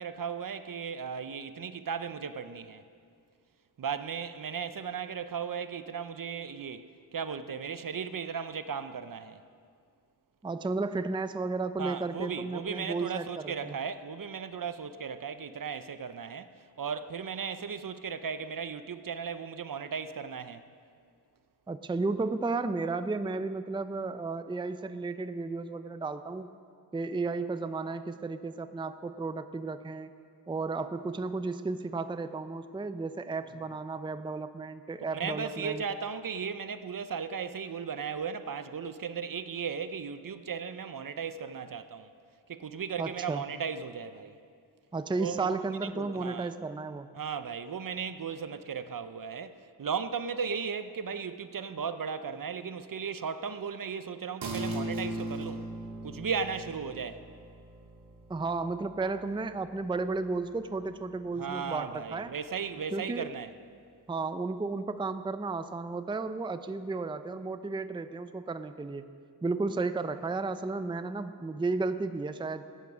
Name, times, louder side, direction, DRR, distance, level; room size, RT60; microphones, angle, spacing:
voice 1, 0.0-2.8 3.8-6.8 7.1-9.4 11.8-16.5 16.8-20.6 35.1-42.1 42.5-44.4 45.2-45.6 45.9-46.5 47.1-55.7 56.0-57.2 61.4-63.5, right 6 dB, 55° right, 0.7 m, -36 dB
voice 2, 10.4-13.8 21.7-26.5 26.9-30.1 30.5-35.8 43.0-43.4 44.9-47.1 58.3-62.3 62.9-63.3 64.1-69.1 69.4-72.7, right 3 dB, 10° right, 0.5 m, -33 dB
sound 1, 54.4-61.4 61.8-61.9, right 1 dB, 80° right, 1.9 m, -40 dB
15.0 x 9.3 x 6.2 m
cardioid pair, 55°, 40 cm